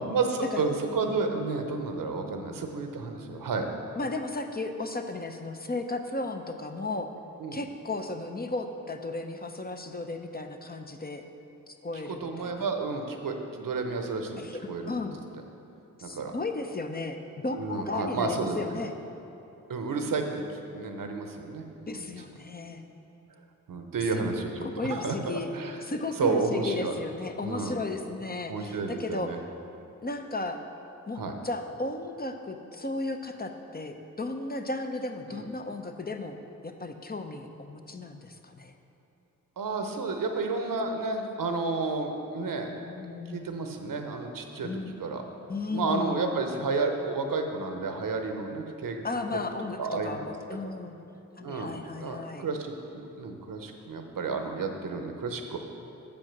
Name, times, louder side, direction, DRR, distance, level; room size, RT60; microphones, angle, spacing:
voice 1, 0.0-3.7 7.4-7.6 12.1-15.0 16.0-16.3 17.5-18.8 19.7-20.4 20.7-22.1 23.7-24.5 24.9-25.1 25.5-25.8 26.2-26.9 27.4-27.8 28.5-29.4 31.2-31.3 35.3-35.4 39.6-42.7 43.3-44.7 45.0-45.2 45.7-49.0 49.8-50.1 51.4-51.7 52.0-55.6, right 4 dB, 70° right, 4 dB, 0.8 m, -31 dB
voice 2, 4.0-7.1 7.5-11.2 11.7-12.7 14.4-15.2 16.0-17.2 17.4-18.9 21.9-22.8 24.1-24.2 24.6-25.5 25.8-29.3 30.0-30.6 31.1-36.4 36.6-38.7 42.7-43.5 44.6-45.0 45.5-46.4 49.0-51.0 51.4-52.5, left 2 dB, 25° left, 5 dB, 0.6 m, -35 dB
7.0 x 5.3 x 5.9 m, 2.9 s
cardioid pair, 40°, 34 cm